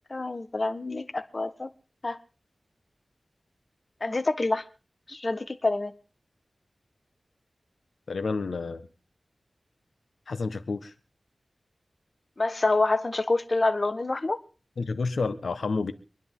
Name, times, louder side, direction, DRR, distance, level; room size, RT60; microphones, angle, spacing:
voice 1, 0.1-1.7 2.0-2.2 4.0-4.6 5.1-5.9 12.4-14.4, left 2 dB, 45° left, 1.4 m, -27 dB
voice 2, 8.1-8.9 10.3-10.9 14.8-15.9, left 4 dB, 90° left, 1.3 m, -29 dB
26.0 x 10.5 x 3.8 m
wide cardioid pair, 70°, 0 cm